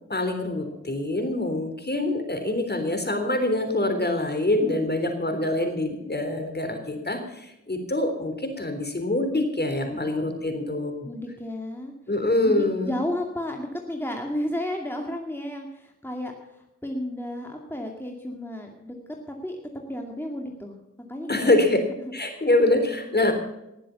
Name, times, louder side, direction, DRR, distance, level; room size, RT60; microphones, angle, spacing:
voice 1, 0.1-11.1 12.1-12.9 21.3-21.8 22.1-23.3, left 2 dB, 35° left, 6 dB, 3.6 m, -25 dB
voice 2, 9.9-10.4 11.0-11.9 12.4-19.0 19.3-19.6 19.9-20.8 21.1-22.5, left 1 dB, 5° left, 1 dB, 2.3 m, -33 dB
19.0 x 7.5 x 7.0 m, 0.87 s
cardioid pair, 45°, 30 cm